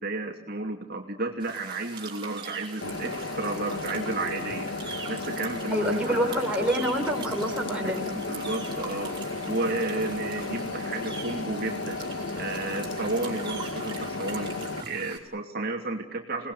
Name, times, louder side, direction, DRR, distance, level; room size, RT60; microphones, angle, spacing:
voice 1, 0.0-4.7 5.1-6.4 7.8-7.9 8.3-9.1 9.5-12.0 12.4-14.5 14.8-16.5, right 2 dB, 50° right, 2 dB, 2.8 m, -32 dB
sound 1, 1.4-15.2, right 5 dB, 25° right, 5.3 m, -42 dB
sound 2, 2.8-14.8, left 3 dB, 60° left, 1.8 m, -34 dB
voice 2, 5.7-8.1, equal, 5° right, -1 dB, 5.5 m, -27 dB
29.0 x 19.5 x 9.4 m, 0.71 s
head